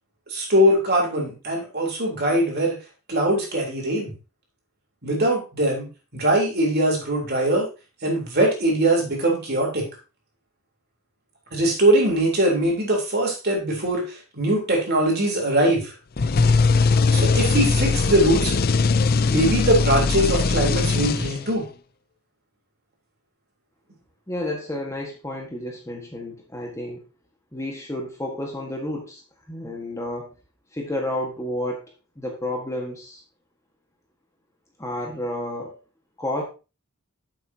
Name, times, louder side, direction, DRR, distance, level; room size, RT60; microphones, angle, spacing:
voice 1, 0.3-2.8 3.1-4.1 5.0-7.7 8.0-9.9 11.5-15.9 17.1-18.6 19.0-21.7, right 1 dB, 45° right, -1 dB, 3.6 m, -21 dB
sound 1, 16.2-21.6, left 4 dB, 45° left, 0.5 m, -20 dB
voice 2, 24.3-27.1 27.5-29.2 29.5-30.3 30.7-33.2 34.8-35.7 36.2-36.4, left 1 dB, 15° left, 0 dB, 1.6 m, -31 dB
10.0 x 7.6 x 2.8 m, 0.31 s
head